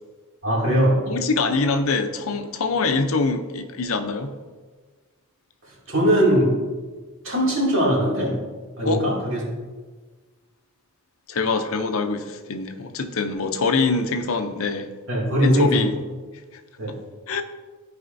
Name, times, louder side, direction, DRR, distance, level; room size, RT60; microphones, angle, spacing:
voice 1, 0.4-1.0 5.6-6.6 7.2-8.4 8.8-9.4 15.1-15.8 16.8-17.0, equal, 60° right, -4 dB, 2.5 m, -20 dB
voice 2, 1.1-4.3 8.9-9.0 11.3-14.9 15.4-15.9 16.5-16.6 17.3-17.4, left 4 dB, 70° left, 7 dB, 0.7 m, -24 dB
14.0 x 4.9 x 2.6 m, 1.4 s
head